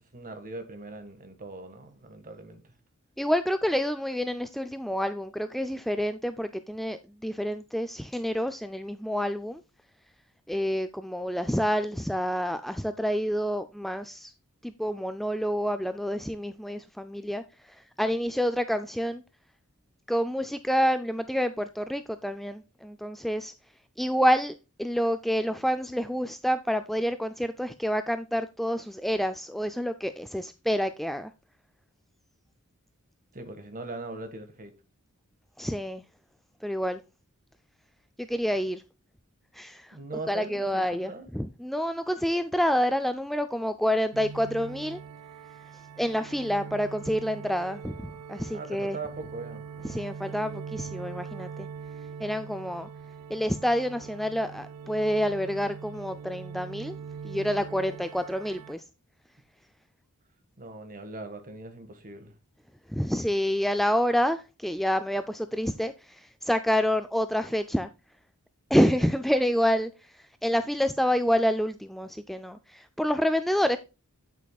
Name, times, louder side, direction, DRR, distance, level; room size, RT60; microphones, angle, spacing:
voice 1, 0.1-2.7 33.3-34.7 39.9-41.3 48.5-49.6 60.6-62.3, right 2 dB, 40° right, 1.6 m, -40 dB
voice 2, 3.2-9.6 10.5-14.3 14.6-19.2 20.1-23.5 24.0-31.3 35.6-36.0 36.6-37.0 38.2-38.8 39.5-40.0 40.3-45.0 46.0-49.0 49.8-51.7 52.2-52.9 53.3-57.0 57.2-58.8 62.9-67.9 68.7-73.8, equal, ahead, 0.3 m, -28 dB
sound 1, 44.1-58.7, right 6 dB, 90° right, 0.4 m, -42 dB
8.3 x 8.2 x 2.3 m
head